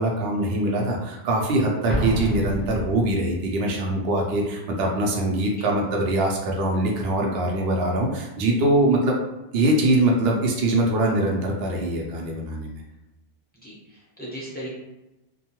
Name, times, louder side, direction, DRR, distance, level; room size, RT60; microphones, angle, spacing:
voice 1, 0.0-9.2 9.5-12.8, right 1 dB, 70° right, 0 dB, 0.8 m, -23 dB
Explosion, 1.9-3.6, equal, 15° right, 0.5 m, -29 dB
voice 2, 13.6-14.7, equal, 10° left, -7 dB, 0.8 m, -37 dB
2.6 x 2.2 x 2.9 m, 0.99 s
omnidirectional pair, 1.1 m